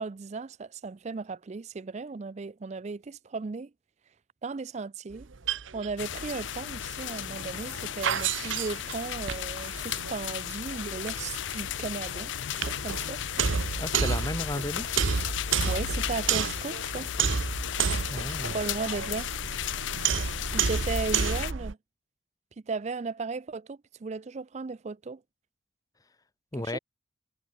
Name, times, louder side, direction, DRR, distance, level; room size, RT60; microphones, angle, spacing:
voice 1, 0.0-3.7 4.4-5.3 5.7-13.2 15.6-17.1 18.5-19.3 20.5-21.8 22.7-25.2 26.7-26.8, right 4 dB, 35° right, 0.4 m, -36 dB
sound 1, 5.1-21.7, right 6 dB, 75° right, 0.9 m, -31 dB
sound 2, 6.0-21.5, left 10 dB, 70° left, 0.5 m, -35 dB
voice 2, 13.8-14.9 18.1-18.6 26.5-26.8, left 1 dB, 20° left, 0.7 m, -33 dB
head